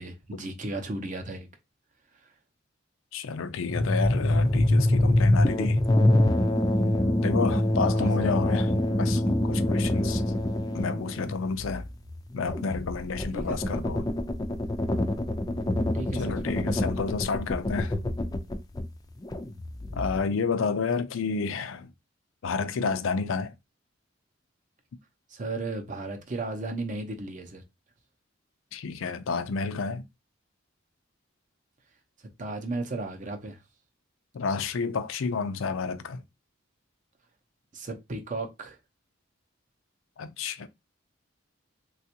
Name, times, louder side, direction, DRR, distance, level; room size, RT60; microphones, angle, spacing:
voice 1, 0.0-1.5 7.9-8.1 13.3-13.8 15.9-16.4 25.3-27.6 32.4-33.6 37.7-38.8, right 2 dB, 40° right, 0.6 m, -35 dB
voice 2, 3.1-5.8 7.2-8.7 9.0-10.2 10.7-11.8 12.3-14.0 16.2-17.9 19.9-21.9 22.4-23.5 28.7-30.0 34.3-36.2 40.2-40.7, left 5 dB, 80° left, 0.4 m, -30 dB
sound 1, 3.7-18.9 19.2-20.2, left 1 dB, 20° left, 0.4 m, -25 dB
3.3 x 2.4 x 2.8 m
head